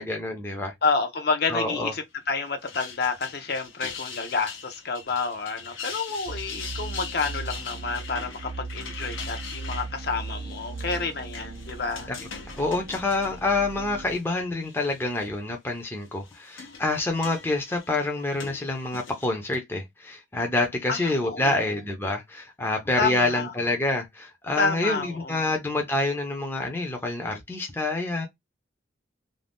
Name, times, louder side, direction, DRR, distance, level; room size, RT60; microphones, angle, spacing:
voice 1, 0.0-0.7 1.5-1.9 12.1-12.2 12.5-28.3, left 2 dB, 10° left, 0.6 m, -27 dB
voice 2, 0.8-12.1 20.9-21.7 23.0-23.5 24.6-25.4, left 4 dB, 50° left, 0.6 m, -29 dB
sound 1, 2.4-14.2 14.6-15.2 16.0-19.3, left 6 dB, 85° left, 0.8 m, -41 dB
sound 2, 6.3-14.2, right 3 dB, 70° right, 0.5 m, -38 dB
2.6 x 2.2 x 3.4 m
head